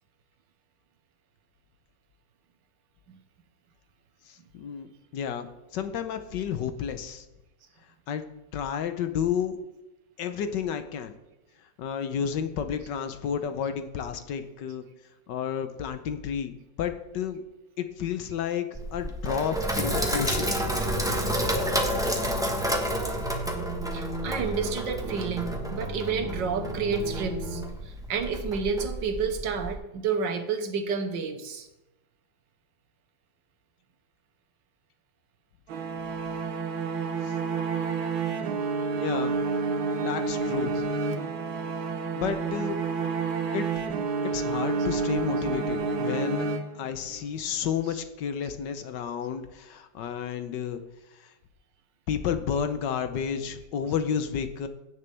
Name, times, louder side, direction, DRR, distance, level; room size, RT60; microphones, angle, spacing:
voice 1, 4.3-5.5 5.7-7.3 8.1-8.2 8.5-9.6 10.2-11.2 11.8-14.9 15.3-17.4 17.8-20.5 37.2-37.3 39.0-39.4 40.0-40.7 42.1-42.8 43.5-43.9 44.2-50.8 51.1-51.3 52.1-54.7, left 8 dB, 70° left, 9 dB, 1.4 m, -31 dB
Sink (filling or washing), 18.7-29.7, equal, 5° right, 0.9 m, -30 dB
sound 1, 20.0-27.6, right 2 dB, 30° right, 2.6 m, -37 dB
voice 2, 23.9-31.7 40.0-40.1 40.7-40.8 45.4-45.5 47.8-48.0, right 5 dB, 70° right, 6 dB, 1.7 m, -30 dB
sound 2, 35.7-47.2, right 4 dB, 85° right, 1.8 m, -29 dB
17.0 x 6.9 x 3.4 m, 0.98 s
omnidirectional pair, 2.1 m